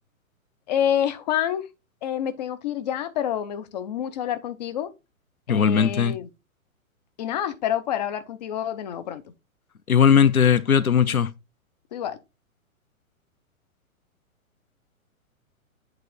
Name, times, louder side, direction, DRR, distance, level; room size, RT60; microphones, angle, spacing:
voice 1, 0.7-1.7 2.0-4.9 5.5-6.3 7.2-9.2 11.9-12.2, left 10 dB, 30° left, 0.6 m, -27 dB
voice 2, 5.5-6.2 9.9-11.3, left 7 dB, 85° left, 0.6 m, -18 dB
8.3 x 3.1 x 4.6 m
figure-of-eight pair, 115°, 42 cm